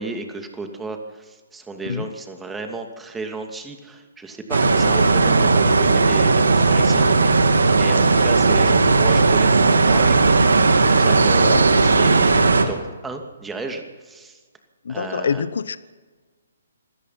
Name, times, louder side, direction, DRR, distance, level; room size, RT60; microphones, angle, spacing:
voice 1, 0.0-7.4 7.6-10.2 10.6-14.4 14.9-15.4, right 3 dB, 10° right, 4 dB, 2.6 m, -33 dB
sound 1, 4.5-12.7, right 3 dB, 75° right, 2.5 m, -16 dB
voice 2, 14.8-15.8, left 6 dB, 65° left, 16 dB, 0.9 m, -25 dB
26.5 x 16.5 x 5.9 m, 1.4 s
figure-of-eight pair, 135°, 0 cm